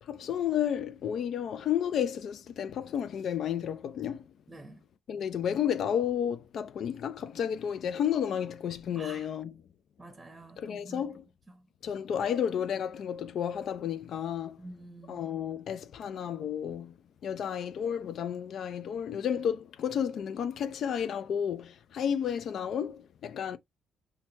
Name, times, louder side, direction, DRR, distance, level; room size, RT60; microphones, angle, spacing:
voice 1, 0.0-4.3 5.1-9.6 10.6-11.2 11.8-14.6 15.1-17.0 17.2-23.6, left 9 dB, 65° left, 0.3 m, -32 dB
voice 2, 4.5-4.8 8.9-9.3 10.0-11.0 14.6-15.3, right 2 dB, 15° right, 0.7 m, -47 dB
3.1 x 2.1 x 3.3 m
cardioid pair, 90°, 0 cm